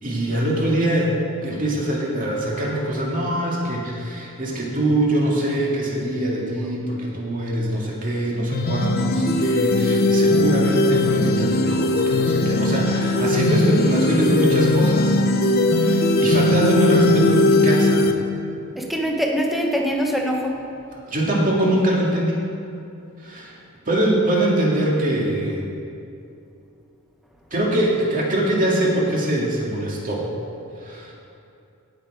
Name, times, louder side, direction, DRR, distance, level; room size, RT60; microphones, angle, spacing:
voice 1, 0.0-1.1 1.4-15.2 15.8-18.1 21.1-22.4 23.2-23.5 23.9-25.6 27.5-30.3 30.8-31.1, right 1 dB, 40° right, -3 dB, 2.2 m, -23 dB
sound 1, 8.5-18.1, left 2 dB, 45° left, 0.7 m, -19 dB
voice 2, 18.8-20.6, equal, ahead, 0 dB, 1.1 m, -23 dB
17.0 x 6.6 x 4.9 m, 2.6 s
head